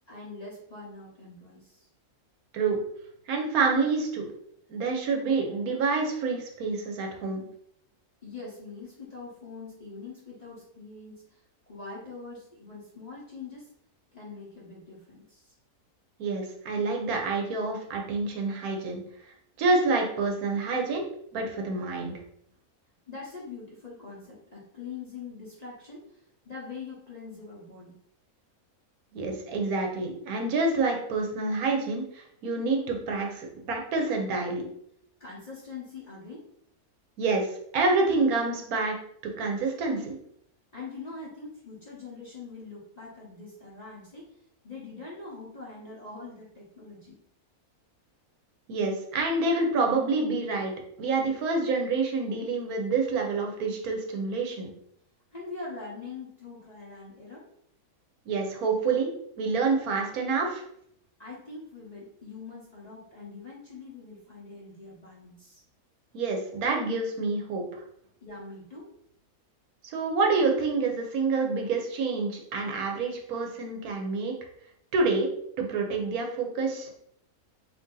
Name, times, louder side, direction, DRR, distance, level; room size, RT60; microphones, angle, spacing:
voice 1, 0.1-1.9 8.2-11.4 11.7-13.7 14.1-15.5 23.1-28.0 35.2-36.5 40.7-44.3 44.6-47.2 55.3-57.5 61.2-65.6 68.2-68.9, left 4 dB, 35° left, -6 dB, 0.7 m, -43 dB
voice 2, 3.3-4.3 4.7-7.4 16.2-21.0 21.3-22.1 29.1-34.7 37.2-39.0 39.4-40.2 48.7-50.7 51.0-54.7 58.3-59.1 59.4-60.6 66.1-67.8 69.8-74.3 74.9-75.3 75.6-76.9, right 3 dB, 80° right, 2 dB, 1.2 m, -27 dB
2.9 x 2.6 x 3.7 m, 0.70 s
omnidirectional pair, 1.5 m